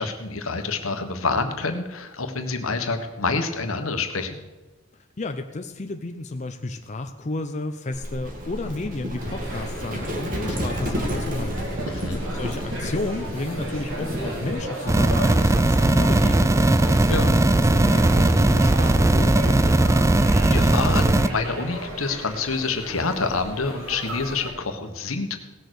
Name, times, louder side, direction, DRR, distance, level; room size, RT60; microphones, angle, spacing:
voice 1, 0.0-4.3 11.9-12.2 17.1-17.3 20.3-25.4, left 4 dB, 80° left, 6 dB, 1.4 m, -27 dB
voice 2, 5.2-11.7 12.3-16.8 17.6-20.1, left 2 dB, 35° left, 5 dB, 0.7 m, -32 dB
Livestock farm animals working animals, 7.9-14.6, equal, 40° right, 2.2 m, -31 dB
sound 1, 9.2-24.5, equal, 70° right, 3.3 m, -35 dB
sound 2, 14.9-21.3, right 2 dB, 15° right, 0.4 m, -18 dB
17.5 x 6.7 x 6.4 m, 1.2 s
head